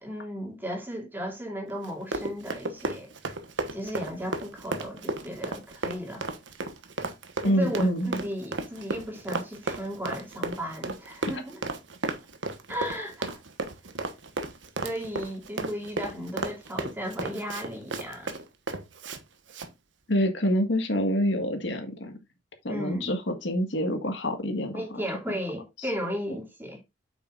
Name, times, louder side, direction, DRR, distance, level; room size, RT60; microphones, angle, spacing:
voice 1, 0.0-3.1 3.7-6.3 7.4-11.6 12.7-13.4 14.8-18.4 22.7-23.1 24.7-26.8, equal, 10° right, 2.5 m, -35 dB
Run, 1.8-19.2 19.5-19.7, right 3 dB, 75° right, 1.2 m, -34 dB
voice 2, 7.4-8.2 20.1-22.1 22.6-24.7 25.3-25.4, equal, 70° left, 1.7 m, -26 dB
8.4 x 6.5 x 2.5 m
head